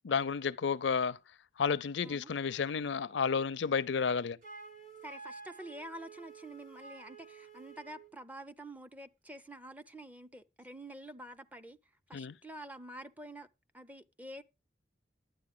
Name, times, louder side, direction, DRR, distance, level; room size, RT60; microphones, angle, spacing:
voice 1, 0.0-1.2 1.6-4.4 12.1-12.3, left 6 dB, 70° left, 0.5 m, -31 dB
Wind instrument woodwind instrument, 4.4-8.1, right 4 dB, 45° right, 1.8 m, -51 dB
voice 2, 5.0-11.8 12.1-13.5 13.7-14.4, right 1 dB, 10° right, 0.5 m, -48 dB
11.5 x 9.0 x 3.8 m
head